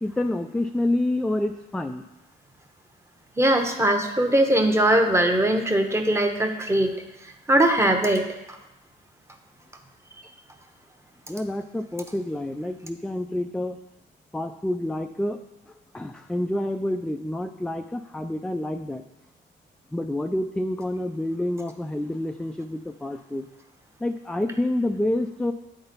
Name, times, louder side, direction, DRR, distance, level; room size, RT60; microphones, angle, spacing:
voice 1, 0.0-2.0 11.3-13.8 14.3-15.4 15.7-19.0 19.9-23.5 24.0-25.5, left 1 dB, 5° left, 6 dB, 0.3 m, -28 dB
voice 2, 3.4-7.0 7.5-8.6, right 1 dB, 15° right, 5 dB, 0.9 m, -21 dB
9.4 x 4.0 x 4.0 m, 0.92 s
cardioid pair, 90°, 20 cm